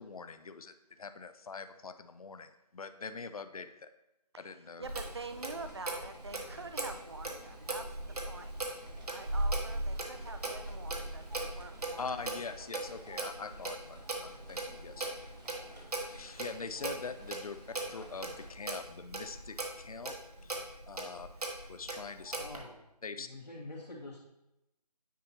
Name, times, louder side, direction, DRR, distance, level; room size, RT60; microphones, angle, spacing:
voice 1, 0.0-3.9 4.4-4.9 12.0-15.1 16.0-17.6 17.9-20.2 20.4-20.6 20.9-21.3 21.7-22.3 23.0-23.3, left 4 dB, 60° left, 10 dB, 0.5 m, -43 dB
voice 2, 4.8-7.9 8.2-8.5 9.1-12.2, right 3 dB, 40° right, 8 dB, 0.4 m, -46 dB
Clock, 4.8-22.6, right 2 dB, 65° right, 1.2 m, -39 dB
sound 1, 5.0-18.5, right 1 dB, 85° right, 1.8 m, -56 dB
voice 3, 22.3-22.8 23.3-24.2, left 2 dB, 90° left, -5 dB, 2.1 m, -46 dB
9.2 x 4.3 x 2.9 m, 0.91 s
figure-of-eight pair, 170°, 21 cm